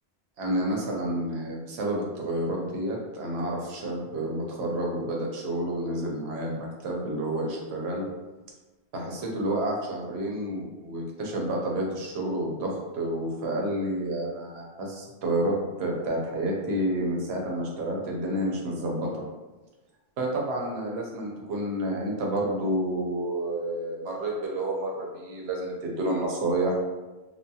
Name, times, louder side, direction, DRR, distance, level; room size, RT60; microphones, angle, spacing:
voice 1, 0.4-8.1 8.9-19.1 20.2-26.8, right 1 dB, 80° right, -1 dB, 0.9 m, -29 dB
2.2 x 2.2 x 2.7 m, 1.2 s
omnidirectional pair, 1.1 m